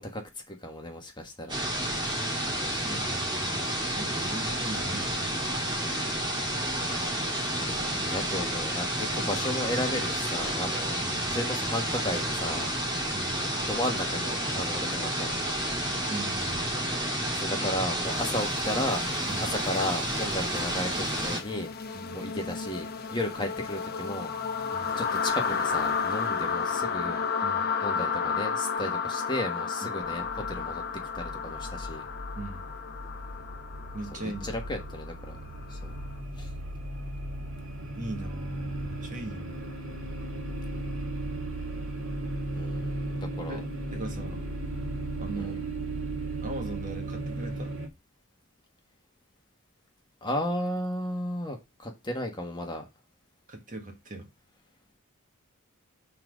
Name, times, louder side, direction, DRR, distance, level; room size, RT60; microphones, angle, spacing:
voice 1, 0.0-1.6 2.1-2.2 7.5-12.7 13.7-15.4 17.3-19.0 19.5-21.7 22.1-24.3 25.0-27.2 27.8-30.8 31.1-32.1 34.1-35.4 35.7-35.9 36.4-36.5 42.5-43.6 45.4-45.5 50.2-52.8, left 1 dB, 20° left, 1.4 m, -34 dB
sound 1, 1.5-21.4, right 1 dB, 20° right, 1.9 m, -30 dB
voice 2, 2.7-5.3 10.9-11.4 13.1-13.5 16.1-16.8 19.3-19.5 21.9-22.2 24.7-24.9 27.4-27.7 29.8-30.0 32.4-32.7 33.9-34.5 38.0-39.6 43.5-44.4 45.2-45.6 46.4-47.8 53.5-54.3, right 2 dB, 40° right, 1.5 m, -39 dB
sound 2, 18.2-36.0, left 5 dB, 45° left, 0.9 m, -33 dB
sound 3, 30.0-47.9, right 1 dB, 65° right, 2.0 m, -36 dB
5.8 x 4.0 x 6.2 m
head